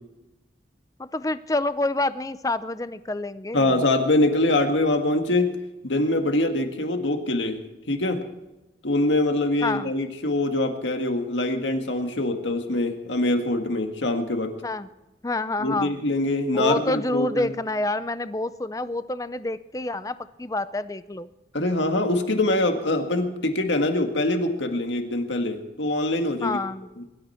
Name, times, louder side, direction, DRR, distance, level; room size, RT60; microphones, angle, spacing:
voice 1, 1.0-3.8 9.6-9.9 14.6-14.9 15.2-15.9 16.5-21.3 26.4-26.9, left 2 dB, 20° left, 14 dB, 0.5 m, -28 dB
voice 2, 3.5-5.6 5.8-7.6 7.9-8.2 8.8-14.6 15.6-17.5 21.5-26.6 27.0-27.1, left 2 dB, 90° left, 5 dB, 1.8 m, -24 dB
23.0 x 13.0 x 4.4 m, 1.0 s
head